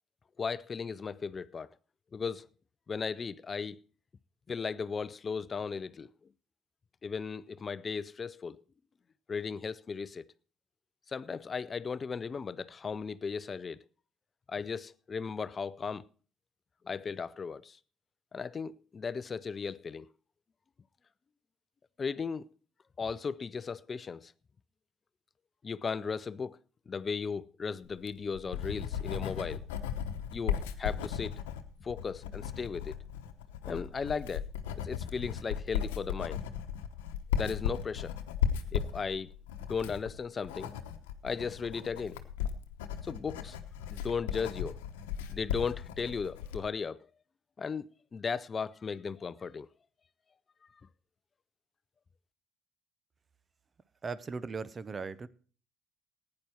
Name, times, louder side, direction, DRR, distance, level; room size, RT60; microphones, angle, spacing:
voice 1, 0.4-1.7 2.1-2.5 2.9-3.8 4.5-6.1 7.0-8.6 9.3-10.3 11.1-13.8 14.5-16.1 16.8-17.8 18.3-20.1 22.0-22.5 23.0-24.3 25.6-26.6 26.9-29.6 30.3-31.4 31.8-33.0 33.6-34.5 34.8-36.4 37.3-38.2 38.7-39.3 39.7-40.8 41.2-42.2 43.0-43.6 43.9-44.8 45.3-47.1 47.6-49.7, left 5 dB, 35° left, 0.5 m, -36 dB
Writing, 27.9-46.7, left 9 dB, 85° left, 0.9 m, -36 dB
voice 2, 54.0-55.3, right 4 dB, 35° right, 0.8 m, -38 dB
15.0 x 9.6 x 4.4 m
hypercardioid pair, 65°, 0 cm